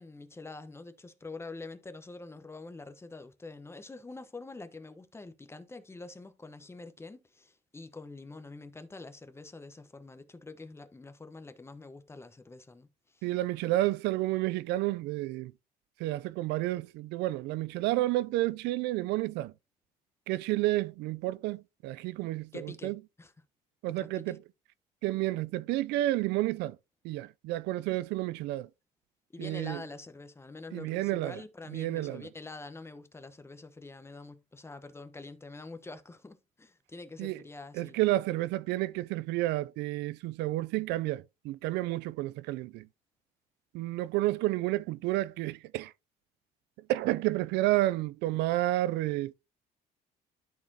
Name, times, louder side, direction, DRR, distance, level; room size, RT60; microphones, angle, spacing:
voice 1, 0.0-13.3 22.5-23.3 23.9-24.4 29.3-38.0, left 3 dB, 15° left, 1.0 m, -46 dB
voice 2, 13.2-15.5 16.0-19.5 20.3-22.9 23.8-24.4 25.0-26.8 27.0-28.7 29.4-29.8 30.7-31.4 31.7-32.3 37.2-37.4 37.7-42.9 43.7-45.9 46.9-49.3, right 17 dB, 90° right, 0.4 m, -30 dB
13.0 x 4.3 x 2.8 m
cardioid pair, 110°, 17 cm